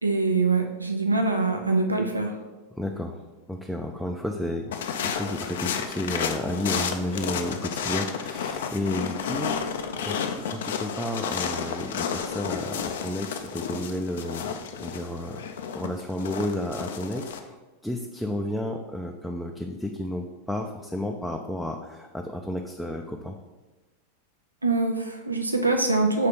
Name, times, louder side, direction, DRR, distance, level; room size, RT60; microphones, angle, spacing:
voice 1, 0.0-2.4 24.6-26.3, right 3 dB, 80° right, 4 dB, 0.5 m, -24 dB
voice 2, 2.8-3.2 3.5-9.6 10.0-15.5 15.7-17.5 17.8-23.4, left 1 dB, ahead, 2 dB, 0.4 m, -32 dB
sound 1, 4.7-17.4, left 7 dB, 60° left, 0.5 m, -32 dB
5.6 x 3.3 x 5.2 m, 1.2 s
figure-of-eight pair, 90°, 0 cm